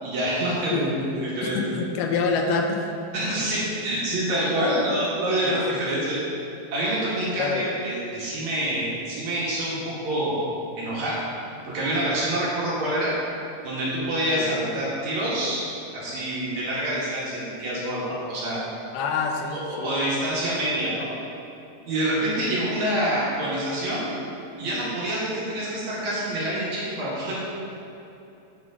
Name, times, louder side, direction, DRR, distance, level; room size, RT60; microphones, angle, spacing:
voice 1, 0.0-1.6 3.1-6.2 6.7-10.5 10.8-11.2 11.6-13.1 13.6-15.6 15.9-18.6 19.5-21.1 21.9-24.1 24.6-27.3, right 1 dB, 55° right, -7 dB, 2.7 m, -26 dB
voice 2, 1.4-2.9 5.4-6.0 7.3-7.7 14.4-14.5 18.9-20.0, left 4 dB, 80° left, 3 dB, 2.6 m, -27 dB
9.4 x 8.1 x 3.8 m, 3.0 s
omnidirectional pair, 4.6 m